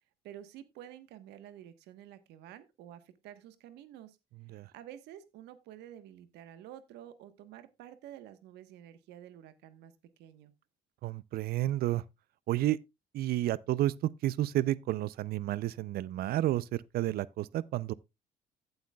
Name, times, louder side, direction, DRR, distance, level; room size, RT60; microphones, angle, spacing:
voice 1, 0.2-4.2 4.7-9.9 10.2-10.5, right 11 dB, 85° right, 1.2 m, -50 dB
voice 2, 11.0-12.0 12.5-12.8 13.1-17.9, right 14 dB, 65° right, 0.5 m, -31 dB
15.0 x 7.9 x 2.3 m
cardioid pair, 110°, 17 cm